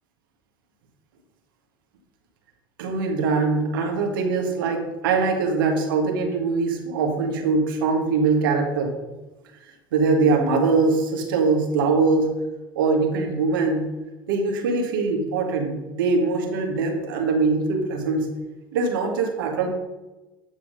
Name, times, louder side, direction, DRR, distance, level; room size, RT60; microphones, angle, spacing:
voice 1, 2.8-8.9 9.9-12.3 12.8-13.9 14.3-18.3 18.7-19.7, right 4 dB, 80° right, 3 dB, 1.7 m, -22 dB
8.9 x 5.9 x 5.1 m, 1.1 s
hypercardioid pair, 80°, 11 cm